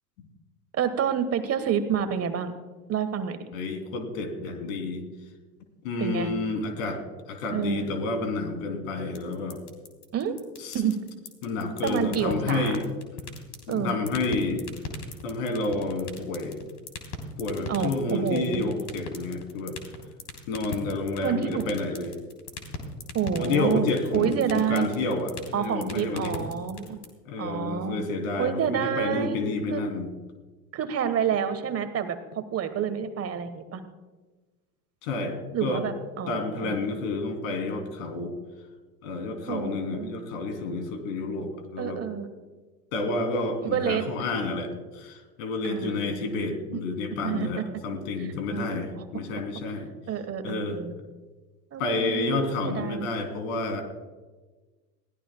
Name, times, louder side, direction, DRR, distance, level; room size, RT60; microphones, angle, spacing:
voice 1, 0.7-2.5 2.9-3.4 6.0-6.3 7.5-7.8 10.1-10.3 10.7-10.9 11.8-12.8 13.7-13.9 17.7-18.6 21.2-21.6 23.1-23.9 24.1-24.9 25.5-27.0 27.4-28.0 28.4-29.4 29.7-29.8 30.7-33.8 35.5-36.8 39.5-40.1 41.8-42.3 43.7-44.0 45.6-46.8 47.2-47.6 48.2-49.0 50.1-50.9 51.7-53.1, right 8 dB, 30° right, 10 dB, 1.3 m, -28 dB
voice 2, 3.5-5.1 5.8-7.0 7.3-9.6 10.6-10.8 11.4-12.9 13.7-14.7 15.2-16.6 17.4-19.8 20.5-22.2 23.4-26.5 27.2-30.1 35.0-35.8 36.3-38.3 39.0-42.0 42.9-49.9 50.4-50.8 51.8-53.8, left 3 dB, 60° left, 5 dB, 3.1 m, -30 dB
sound 1, 9.1-27.0, left 5 dB, 40° left, 3.4 m, -37 dB
21.5 x 16.5 x 2.3 m, 1.3 s
hypercardioid pair, 80°, 46 cm